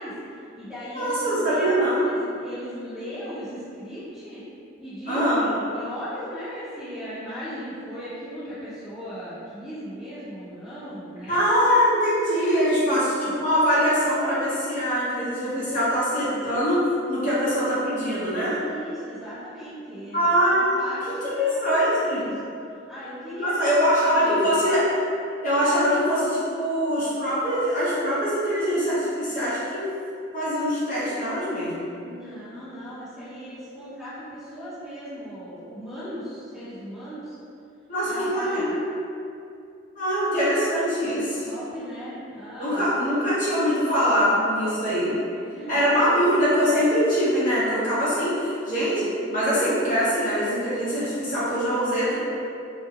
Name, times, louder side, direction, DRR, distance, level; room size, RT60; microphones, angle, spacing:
voice 1, 0.0-4.4 4.8-11.4 17.2-17.4 18.3-21.7 22.0-22.3 22.9-24.7 32.0-37.3 38.0-38.7 41.4-42.9 45.0-46.0 49.1-49.3, equal, 10° right, -20 dB, 0.8 m, -37 dB
voice 2, 0.9-2.0 5.1-5.5 11.3-16.8 17.1-18.5 20.1-22.2 23.4-24.9 25.4-29.9 30.3-31.9 37.9-38.9 40.0-41.4 42.6-45.2 45.7-52.2, equal, 40° left, -11 dB, 0.7 m, -23 dB
2.4 x 2.1 x 2.8 m, 2.6 s
head